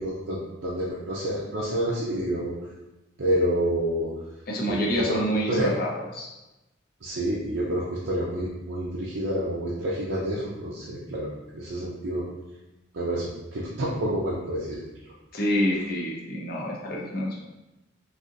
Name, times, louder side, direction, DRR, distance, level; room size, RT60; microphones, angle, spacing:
voice 1, 0.0-2.5 3.2-4.1 4.7-5.7 7.0-12.3 12.9-14.8, right 1 dB, 70° right, -6 dB, 0.6 m, -28 dB
voice 2, 4.5-6.3 15.3-17.4, equal, 50° left, -3 dB, 0.7 m, -27 dB
4.0 x 2.7 x 2.5 m, 1.0 s
head